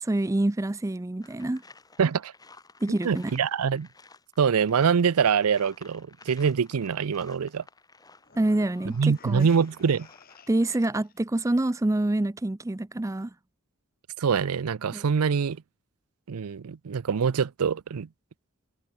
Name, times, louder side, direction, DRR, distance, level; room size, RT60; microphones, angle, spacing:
voice 1, 0.0-1.6 2.8-3.3 8.4-9.5 10.5-13.3 14.9-15.0, right 1 dB, 15° right, 0.4 m, -26 dB
sound 1, 1.2-11.1 11.5-11.7, left 3 dB, 15° left, 4.8 m, -54 dB
voice 2, 2.0-2.3 2.9-3.9 4.4-7.6 9.0-10.1 14.2-15.6 16.3-18.1, right 6 dB, 85° right, 0.5 m, -24 dB
sound 2, 8.2-11.2, left 4 dB, 40° left, 2.9 m, -54 dB
head